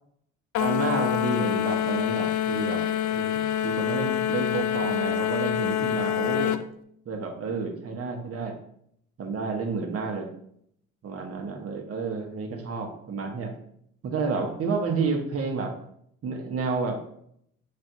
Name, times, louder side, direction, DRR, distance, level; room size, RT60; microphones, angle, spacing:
sound 1, 0.5-6.6, left 10 dB, 70° left, 0.5 m, -26 dB
voice 1, 0.6-6.6 7.1-8.5 9.2-10.3 11.0-13.5 14.0-15.8 16.2-17.0, right 4 dB, 50° right, 3 dB, 1.0 m, -30 dB
5.8 x 3.3 x 2.6 m, 0.70 s
cardioid pair, 90°, 30 cm